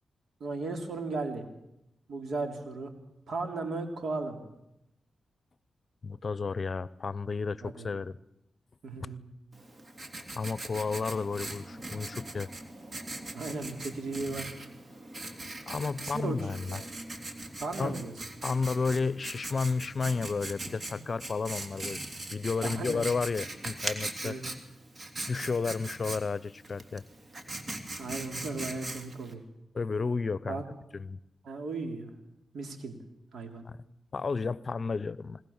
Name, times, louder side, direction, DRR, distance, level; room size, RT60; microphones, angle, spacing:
voice 1, 0.4-1.5 2.1-2.9 3.3-4.4 7.6-7.9 8.8-9.2 13.3-14.5 16.0-16.3 16.7-16.8 17.6-18.1 20.9-21.0 22.6-23.0 24.2-24.4 28.0-29.4 30.5-30.6 31.4-32.1 32.5-33.0 33.3-33.7, right 3 dB, 70° right, 5 dB, 3.4 m, -36 dB
voice 2, 6.0-8.2 10.3-12.5 15.7-16.8 17.8-18.0 18.4-22.0 22.3-24.4 25.3-27.0 29.7-30.6 30.9-31.2 34.1-35.4, left 4 dB, 50° left, 19 dB, 0.7 m, -32 dB
Writing, 9.5-29.3, right 2 dB, 45° right, 3.1 m, -41 dB
21.0 x 20.0 x 7.3 m, 0.86 s
cardioid pair, 55°, 0 cm